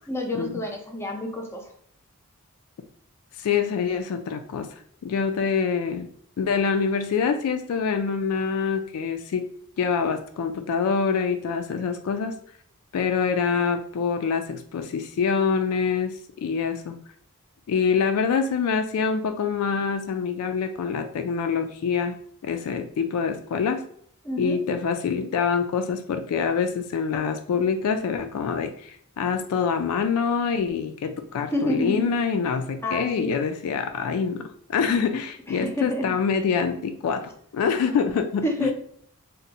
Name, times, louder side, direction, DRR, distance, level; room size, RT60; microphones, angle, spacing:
voice 1, 0.1-1.7 24.2-24.6 31.5-32.1 32.8-33.3 35.5-36.1 38.4-38.7, left 1 dB, 10° left, 1 dB, 0.5 m, -28 dB
voice 2, 3.4-4.7 5.0-6.1 6.4-9.5 9.8-12.4 12.9-17.0 17.7-22.2 22.4-23.8 24.4-38.7, left 6 dB, 85° left, 7 dB, 0.3 m, -25 dB
2.7 x 2.1 x 4.0 m, 0.63 s
head